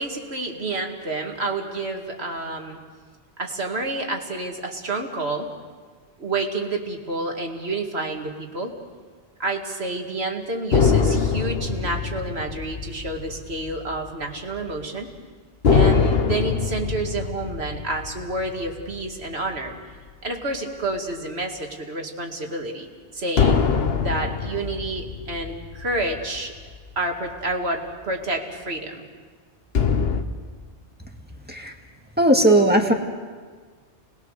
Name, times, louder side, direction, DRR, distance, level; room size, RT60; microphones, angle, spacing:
voice 1, 0.0-2.8 3.4-5.5 6.2-8.7 9.4-15.1 15.7-19.7 20.2-22.9 23.1-23.6 24.0-26.5 27.0-29.1, right 2 dB, 65° right, 2 dB, 2.5 m, -29 dB
sound 1, 10.7-14.4 14.7-14.9 15.6-20.3 23.4-27.0 29.7-30.2, left 5 dB, 60° left, 1.3 m, -23 dB
voice 2, 32.2-32.9, right 1 dB, 10° right, 2 dB, 2.1 m, -17 dB
30.0 x 20.5 x 6.6 m, 1.5 s
omnidirectional pair, 1.1 m